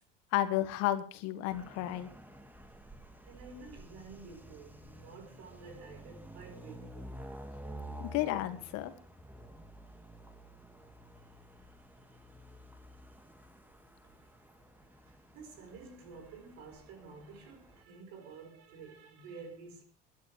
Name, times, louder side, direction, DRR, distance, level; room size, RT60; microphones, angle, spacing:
voice 1, 0.3-2.1 8.0-8.9, left 14 dB, 55° left, 1.6 m, -32 dB
sound 1, 1.5-17.8, right 1 dB, 5° right, 2.1 m, -51 dB
voice 2, 3.3-7.1 14.0-14.6 14.8-19.8, right 4 dB, 55° right, 4.8 m, -51 dB
21.5 x 11.0 x 3.4 m
figure-of-eight pair, 65°, 30 cm